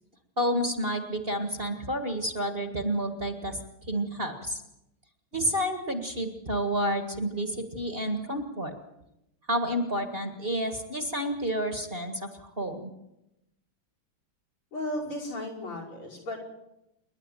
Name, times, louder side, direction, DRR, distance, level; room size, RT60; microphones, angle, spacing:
voice 1, 0.4-3.6 3.9-4.6 5.3-8.8 9.5-12.9, equal, 30° right, 6 dB, 1.9 m, -30 dB
voice 2, 14.7-16.4, left 1 dB, 80° left, 3 dB, 6.4 m, -35 dB
28.0 x 11.5 x 9.1 m, 0.88 s
omnidirectional pair, 2.3 m